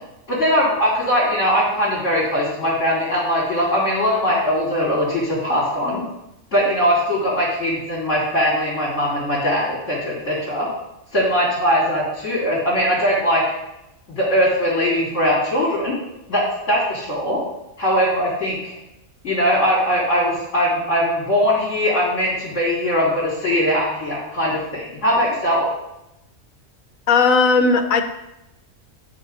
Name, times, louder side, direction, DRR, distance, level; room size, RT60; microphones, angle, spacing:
voice 1, 0.3-6.0 6.5-10.7 11.1-13.4 14.2-16.0 16.3-17.4 17.8-18.7 19.2-25.7, equal, 60° left, -11 dB, 3.9 m, -20 dB
voice 2, 27.1-28.0, left 4 dB, 75° left, 8 dB, 1.2 m, -16 dB
12.0 x 6.1 x 4.1 m, 0.89 s
omnidirectional pair, 1.5 m